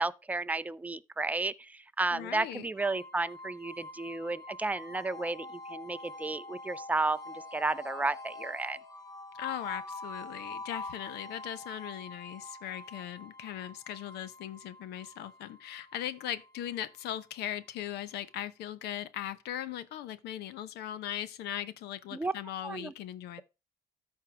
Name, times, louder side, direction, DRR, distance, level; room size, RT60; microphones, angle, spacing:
voice 1, 0.0-8.8 22.1-22.3 22.6-22.9, right 3 dB, 10° right, 0.4 m, -33 dB
voice 2, 2.1-2.7 9.3-23.4, left 11 dB, 80° left, 0.8 m, -39 dB
sound 1, 2.8-17.7, left 2 dB, 25° left, 1.5 m, -46 dB
13.5 x 4.6 x 3.4 m
cardioid pair, 110°, 17 cm